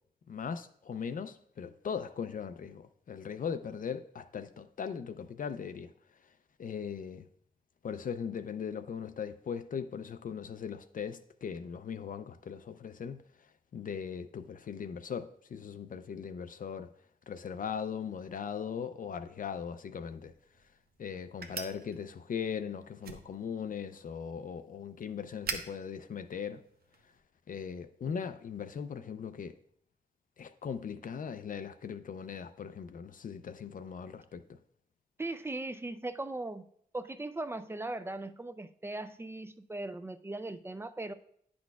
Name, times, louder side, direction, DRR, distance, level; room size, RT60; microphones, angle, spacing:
voice 1, 0.3-5.9 6.6-7.3 7.8-13.2 13.7-16.9 17.3-20.3 21.0-26.6 27.5-29.6 30.4-34.6, left 7 dB, 60° left, 0.4 m, -39 dB
sound 1, 20.0-27.2, right 4 dB, 75° right, 0.7 m, -46 dB
voice 2, 35.2-36.7 36.9-41.1, right 2 dB, 15° right, 0.3 m, -39 dB
9.4 x 6.1 x 2.3 m
wide cardioid pair, 105°, 16 cm